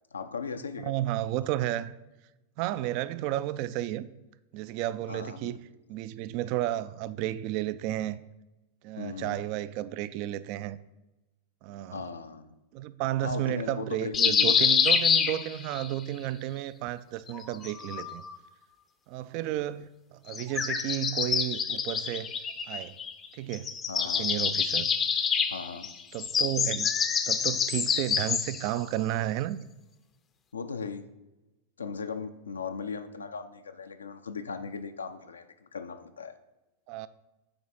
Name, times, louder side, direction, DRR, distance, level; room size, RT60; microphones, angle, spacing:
voice 1, 0.1-0.9 5.1-5.5 9.0-9.4 11.9-12.5 13.2-14.8 23.9-24.3 25.5-25.9 30.5-31.0 31.8-36.3, left 5 dB, 75° left, 0.5 m, -38 dB
voice 2, 0.8-2.0 2.6-4.1 4.5-5.6 5.9-8.2 8.8-10.8 11.6-12.0 12.7-18.2 19.1-22.3 22.7-23.0 23.3-23.7 24.2-24.9 26.1-26.9 27.3-29.6 36.9-37.1, right 13 dB, 45° right, 0.3 m, -32 dB
sound 1, 14.1-15.9 17.3-18.3 20.3-23.3 23.5-28.7, left 6 dB, 25° left, 0.6 m, -27 dB
7.8 x 4.7 x 4.2 m
figure-of-eight pair, 90°, 0 cm